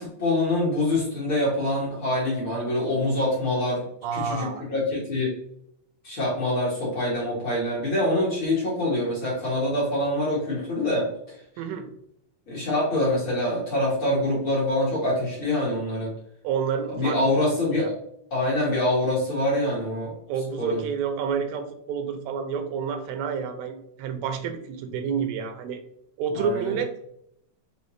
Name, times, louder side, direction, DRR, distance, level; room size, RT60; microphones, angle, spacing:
voice 1, 0.0-3.8 4.1-5.3 6.0-11.4 12.5-16.1 16.9-17.9 18.3-20.1 20.6-20.8 26.3-26.7, left 1 dB, 55° left, -7 dB, 1.4 m, -25 dB
voice 2, 4.0-4.6 11.6-11.9 16.4-17.4 17.7-17.9 20.3-25.8 26.2-26.9, right 6 dB, 85° right, 7 dB, 2.3 m, -29 dB
5.6 x 2.5 x 3.1 m, 0.73 s
omnidirectional pair, 4.1 m